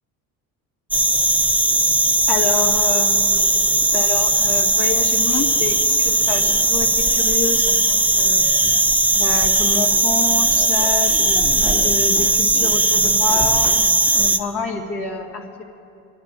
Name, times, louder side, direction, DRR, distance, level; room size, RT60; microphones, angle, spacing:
sound 1, 0.9-14.4, right 2 dB, 5° right, 0.6 m, -18 dB
voice 1, 2.3-8.5 9.1-15.6, left 5 dB, 70° left, -1 dB, 2.0 m, -28 dB
29.0 x 11.5 x 2.7 m, 2.7 s
supercardioid pair, 80°, 40 cm